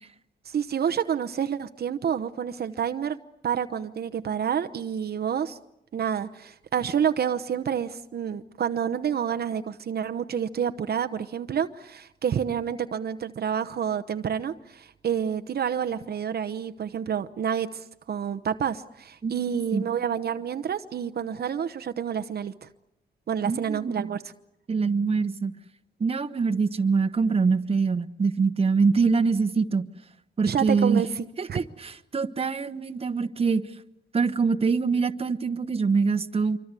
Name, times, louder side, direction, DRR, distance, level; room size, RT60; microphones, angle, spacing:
voice 1, 0.5-3.2 3.4-5.6 5.9-22.7 23.3-24.2 30.4-31.6, right 8 dB, 60° right, 9 dB, 0.9 m, -29 dB
voice 2, 23.4-24.2 24.7-25.5 26.0-29.9 30.4-31.0 31.4-33.6 34.1-36.6, right 4 dB, 35° right, 11 dB, 1.2 m, -24 dB
26.0 x 24.5 x 8.3 m, 0.83 s
wide cardioid pair, 130°, 18 cm